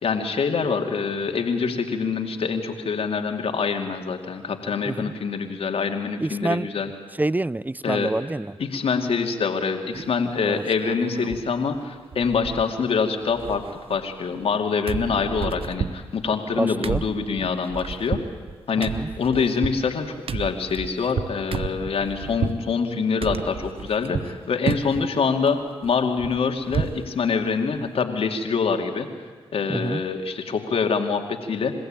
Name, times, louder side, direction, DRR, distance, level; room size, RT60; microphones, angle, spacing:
voice 1, 0.0-6.9 7.8-8.1 8.6-18.2 18.7-29.1 29.5-31.7, left 5 dB, 70° left, 2.6 m, -25 dB
voice 2, 6.2-6.7 7.1-8.5 10.4-10.6 16.5-17.0 18.8-19.1 29.7-30.0, right 2 dB, 15° right, 0.6 m, -27 dB
sound 1, 9.9-10.3 10.7-11.5 11.7-11.8 12.1-13.0 13.2-14.6 14.9-22.6 23.2-24.4 24.7-25.1 25.5-27.1 27.4-27.5 27.8-28.0, right 6 dB, 65° right, 1.0 m, -32 dB
29.0 x 16.0 x 9.0 m
supercardioid pair, 45°, 10 cm